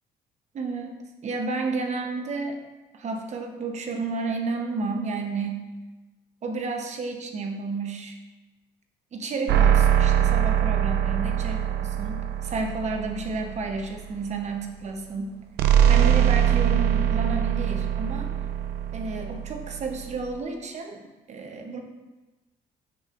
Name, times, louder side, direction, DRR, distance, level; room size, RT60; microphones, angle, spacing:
voice 1, 0.5-2.6 2.9-5.6 6.4-8.1 9.1-15.4 15.9-18.3 18.9-21.8, right 3 dB, 40° right, 3 dB, 0.9 m, -31 dB
sound 1, 9.5-14.0 15.6-20.4, right 9 dB, 75° right, 0.5 m, -23 dB
6.7 x 6.1 x 2.5 m, 1.1 s
cardioid pair, 110°, 17 cm